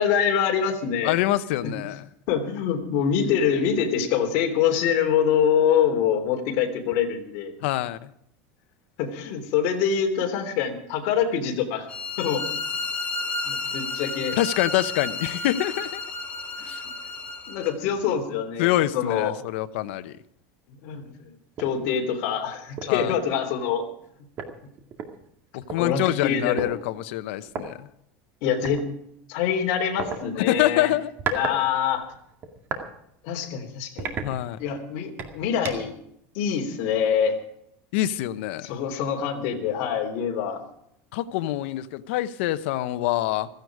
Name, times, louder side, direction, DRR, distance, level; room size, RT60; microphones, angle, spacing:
voice 1, 0.0-1.2 1.6-1.7 2.3-7.5 9.0-11.8 12.2-12.6 13.4-14.4 17.5-19.3 20.7-21.3 21.6-23.8 25.8-26.8 28.4-28.8 29.3-30.9 31.3-32.1 33.2-34.2 34.6-35.9 36.3-37.4 38.6-40.6, left 8 dB, 55° left, 3 dB, 3.3 m, -25 dB
voice 2, 1.0-2.0 7.6-8.1 14.4-16.0 16.6-16.8 18.6-20.2 22.9-23.1 25.5-27.9 30.4-31.1 34.2-34.6 37.9-38.7 41.1-43.5, left 14 dB, 75° left, 12 dB, 1.0 m, -25 dB
sound 1, 11.9-17.7, left 3 dB, 20° left, 2.3 m, -32 dB
sound 2, 21.6-21.8 22.2-22.3 22.8-23.0 24.0-24.1 24.4-25.8 26.6-26.7 27.5-27.6 28.6-28.8 30.0-30.2 30.9-31.6 31.9-32.9 33.3-33.5 34.0-34.8 35.2-36.0, right 5 dB, 30° right, 2.1 m, -33 dB
16.0 x 15.5 x 4.9 m, 0.74 s
supercardioid pair, 165°, 7 cm